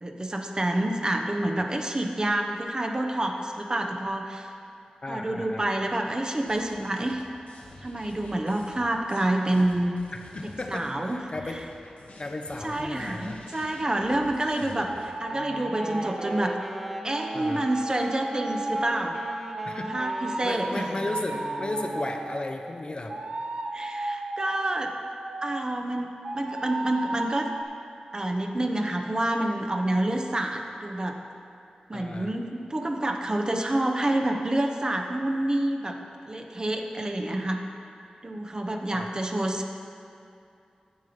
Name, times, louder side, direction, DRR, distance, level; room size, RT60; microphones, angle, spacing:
voice 1, 0.0-4.5 5.1-7.2 7.8-10.0 10.7-11.2 11.5-11.6 12.6-16.6 17.0-19.2 19.9-20.8 23.7-24.9 25.4-27.5 28.1-31.2 31.9-36.0 36.2-37.6 38.2-39.7, right 1 dB, 30° right, 3 dB, 0.8 m, -28 dB
voice 2, 5.0-5.7 10.1-11.6 12.2-13.4 17.3-17.6 19.6-19.9 20.4-23.2 31.9-32.3 38.9-39.1, left 2 dB, 40° left, 4 dB, 0.8 m, -35 dB
sound 1, 6.5-15.1, left 2 dB, 80° left, 1.2 m, -48 dB
sound 2, 14.8-22.5 23.1-25.8 26.2-27.6, right 2 dB, 65° right, 0.7 m, -35 dB
Wind instrument woodwind instrument, 15.2-22.5, right 1 dB, 5° right, 0.8 m, -40 dB
9.7 x 7.4 x 5.1 m, 2.6 s
wide cardioid pair, 70°, 3 cm